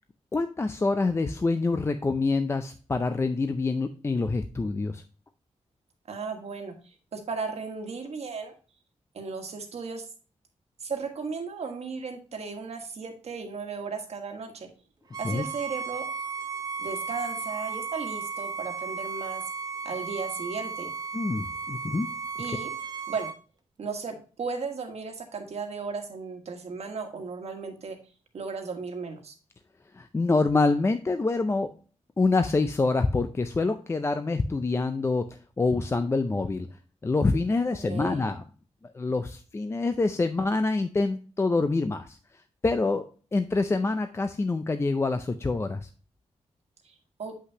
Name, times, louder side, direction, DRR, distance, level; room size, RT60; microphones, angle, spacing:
voice 1, 0.3-5.0 15.2-15.4 21.1-22.1 29.9-31.7 32.2-36.7 37.0-38.4 38.9-42.2 42.6-45.9, left 3 dB, 20° left, 8 dB, 0.4 m, -26 dB
voice 2, 6.1-8.5 9.1-10.0 10.8-14.7 15.2-16.0 16.8-19.4 19.8-20.9 22.4-22.7 23.1-23.3 23.8-28.0 28.3-29.3 37.7-38.3 46.8-46.9 47.2-47.3, right 4 dB, 65° right, 4 dB, 1.5 m, -35 dB
Bowed string instrument, 15.1-23.4, right 5 dB, 35° right, 0.7 m, -35 dB
7.9 x 5.6 x 2.8 m, 0.38 s
wide cardioid pair, 150°, 12 cm